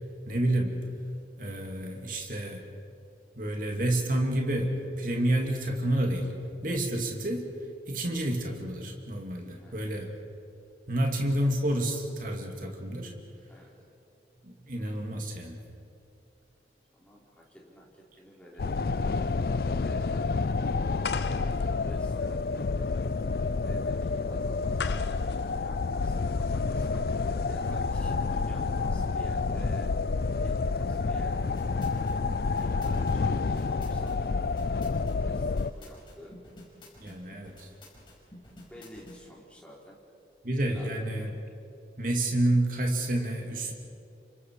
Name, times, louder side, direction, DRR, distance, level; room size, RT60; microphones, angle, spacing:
voice 1, 0.3-0.9 1.4-2.6 3.4-6.3 6.6-7.5 7.9-10.1 10.9-13.1 14.4-15.6 37.0-37.7 40.4-41.3 42.0-43.7, right 1 dB, 50° right, 1 dB, 2.6 m, -29 dB
voice 2, 16.9-18.8 19.8-20.5 21.2-22.5 23.6-29.9 30.3-31.5 32.5-34.2 35.2-36.3 38.7-40.0 40.6-40.9, equal, 5° left, -4 dB, 4.4 m, -50 dB
sound 1, 18.6-35.7, left 4 dB, 55° left, 0.4 m, -29 dB
sound 2, 21.0-26.6, left 6 dB, 75° left, 0.9 m, -41 dB
sound 3, 31.3-39.2, left 1 dB, 30° left, 5.4 m, -50 dB
29.5 x 26.0 x 4.9 m, 2.6 s
head